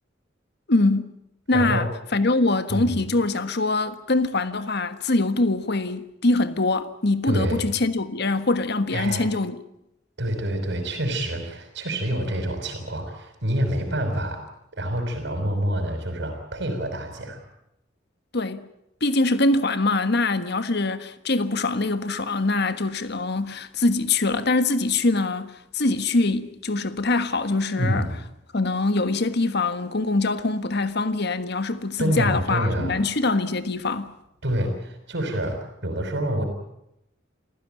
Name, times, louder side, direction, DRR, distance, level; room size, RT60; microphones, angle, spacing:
voice 1, 0.7-1.1 1.5-9.6 18.3-18.7 19.0-28.1 28.5-34.1, left 2 dB, 60° left, 1.5 m, -23 dB
voice 2, 1.5-1.9 2.7-3.0 7.2-7.7 8.9-9.3 10.2-14.4 14.7-17.4 27.7-28.2 32.0-33.0 34.4-36.4, right 1 dB, 60° right, 5.2 m, -27 dB
27.5 x 16.0 x 9.0 m
head